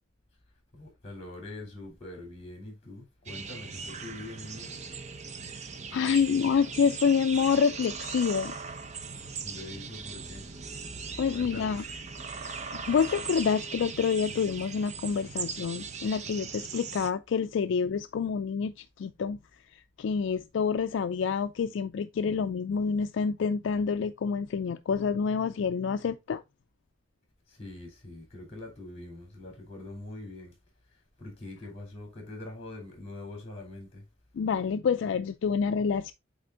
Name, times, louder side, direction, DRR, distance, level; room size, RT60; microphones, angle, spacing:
voice 1, 0.7-4.7 9.4-10.5 11.3-11.8 27.5-30.5 30.9-34.0, left 2 dB, 30° left, 3.1 m, -43 dB
sound 1, 3.3-17.1, right 5 dB, 35° right, 0.6 m, -39 dB
voice 2, 5.9-8.5 11.2-11.8 12.3-19.4 19.7-26.4 34.3-36.1, left 6 dB, 65° left, 0.3 m, -28 dB
7.9 x 3.4 x 3.7 m
head